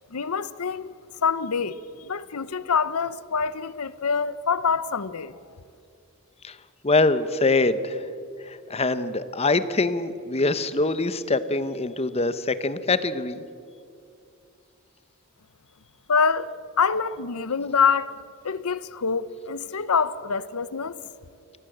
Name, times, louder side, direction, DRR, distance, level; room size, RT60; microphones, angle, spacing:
voice 1, 0.1-0.9 1.2-5.4 16.1-16.5 16.8-18.2 18.4-20.9, left 5 dB, 85° left, 0.8 m, -25 dB
voice 2, 6.8-8.1 8.4-13.4, left 3 dB, 30° left, 0.9 m, -24 dB
25.0 x 17.0 x 7.9 m
head